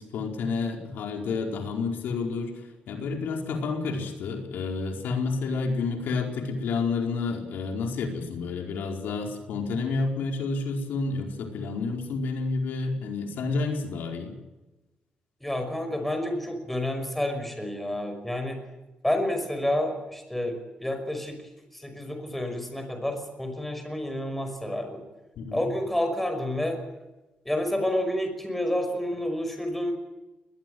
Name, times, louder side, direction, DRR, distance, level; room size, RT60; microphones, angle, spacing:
voice 1, 0.0-2.5 2.9-14.4 25.4-25.7, left 4 dB, 80° left, 3 dB, 4.7 m, -30 dB
voice 2, 15.4-18.6 19.0-21.4 21.7-25.0 25.5-26.8 27.5-29.9, left 1 dB, 5° left, 6 dB, 5.6 m, -29 dB
21.0 x 21.0 x 8.0 m, 1.1 s
cardioid pair, 135°, 3 cm